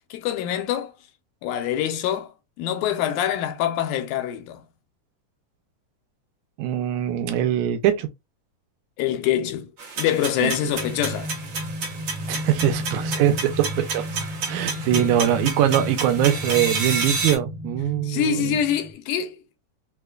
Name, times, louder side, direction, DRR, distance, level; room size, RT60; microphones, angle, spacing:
voice 1, 0.1-0.9 1.4-2.3 2.6-4.6 9.0-9.7 10.0-11.3 14.9-15.1 18.0-19.4, left 10 dB, 85° left, 2.1 m, -25 dB
voice 2, 6.6-8.1 10.4-10.5 12.3-18.6, right 11 dB, 80° right, 1.9 m, -23 dB
sound 1, 9.8-17.4, right 4 dB, 60° right, 1.3 m, -30 dB
sound 2, 10.7-18.9, left 1 dB, 15° right, 0.5 m, -33 dB
4.8 x 2.2 x 2.3 m
omnidirectional pair, 3.5 m